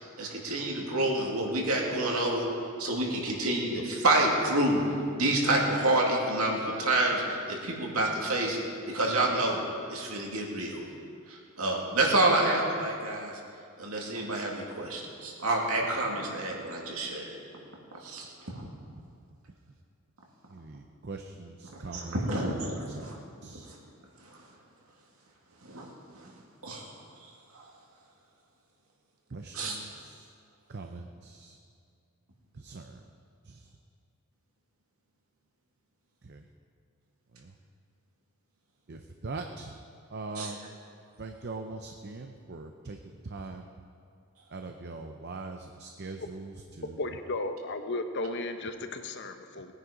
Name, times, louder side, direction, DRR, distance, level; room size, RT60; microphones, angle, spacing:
voice 1, 0.2-2.5 2.8-4.8 5.2-8.6 8.9-9.6 9.9-10.8 11.3-13.3 13.8-17.4 18.0-18.6 21.7-23.2 23.7-23.8 25.6-25.9 26.2-26.3 26.6-26.9 27.5-27.6 29.5-29.8 40.3-40.5, right 1 dB, 75° right, -1 dB, 2.5 m, -28 dB
voice 2, 20.5-22.2 23.0-23.7 29.3-30.3 30.7-31.5 32.6-32.9 33.5-33.6 36.2-36.4 38.9-39.7 40.1-40.7 41.2-43.0 43.2-43.7 44.5-46.8, right 3 dB, 50° right, 5 dB, 0.7 m, -41 dB
voice 3, 47.0-49.7, left 2 dB, 55° left, 7 dB, 0.9 m, -34 dB
19.5 x 9.9 x 5.1 m, 2.4 s
head